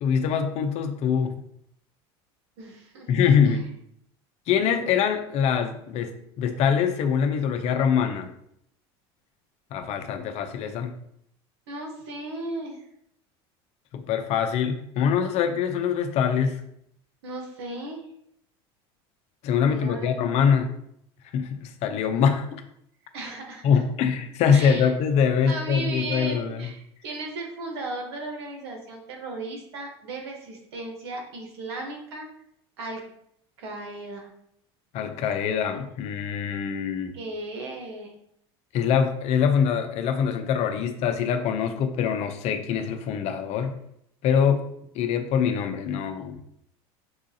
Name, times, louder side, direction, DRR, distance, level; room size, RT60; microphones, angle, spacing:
voice 1, 0.0-1.3 3.1-3.6 4.5-8.3 9.7-10.9 13.9-16.6 19.4-20.7 21.3-22.7 23.6-26.7 34.9-37.1 38.7-43.7 44.2-44.7 44.9-46.4, left 7 dB, 55° left, 7 dB, 0.6 m, -24 dB
voice 2, 2.6-3.1 3.4-3.6 11.7-12.8 17.2-18.0 19.6-20.2 23.1-23.8 24.5-24.9 25.5-32.3 32.8-33.0 33.6-34.3 37.1-38.1, right 2 dB, 90° right, 1 dB, 1.0 m, -36 dB
5.5 x 2.4 x 2.7 m, 0.73 s
supercardioid pair, 105°, 13 cm